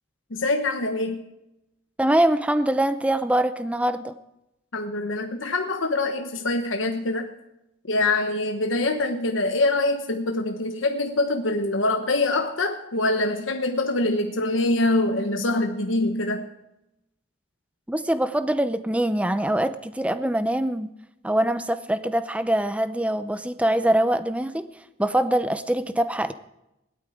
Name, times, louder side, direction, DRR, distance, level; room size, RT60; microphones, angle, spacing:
voice 1, 0.3-1.2 4.7-7.3 7.9-16.5, left 2 dB, 80° left, 5 dB, 1.2 m, -24 dB
voice 2, 2.0-4.2 17.9-20.9 21.2-24.7 25.0-26.3, right 1 dB, 5° right, 12 dB, 0.6 m, -23 dB
18.0 x 12.0 x 4.9 m, 0.88 s
head